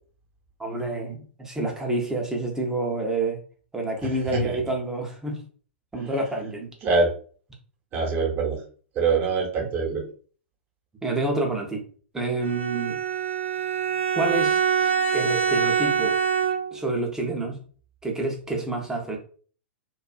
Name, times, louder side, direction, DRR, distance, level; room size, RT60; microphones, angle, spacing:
voice 1, 0.6-3.4 3.7-5.4 5.9-6.7 9.9-10.0 11.0-11.8 12.1-13.0 14.1-14.6 15.1-16.1 16.7-17.6 18.0-19.2, right 2 dB, 10° right, 1 dB, 0.6 m, -28 dB
voice 2, 4.0-4.6 6.8-7.1 7.9-8.6 8.9-10.0, right 4 dB, 30° right, -1 dB, 1.0 m, -24 dB
Bowed string instrument, 12.4-16.9, right 6 dB, 75° right, 0.5 m, -24 dB
2.4 x 2.3 x 2.3 m, 0.43 s
figure-of-eight pair, 105°, 6 cm